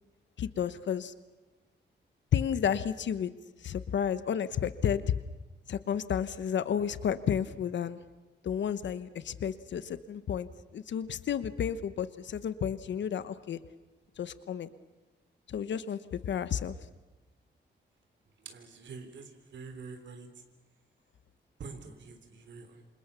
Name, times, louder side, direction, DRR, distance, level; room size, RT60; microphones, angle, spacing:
voice 1, 0.4-1.1 2.3-3.3 3.6-5.0 5.7-8.0 8.4-13.6 14.2-14.7 15.5-16.7, left 8 dB, 75° left, 14 dB, 1.1 m, -31 dB
voice 2, 18.4-20.3 21.6-22.8, right 4 dB, 75° right, 6 dB, 3.6 m, -46 dB
27.5 x 27.0 x 7.0 m, 1.2 s
wide cardioid pair, 140°, 19 cm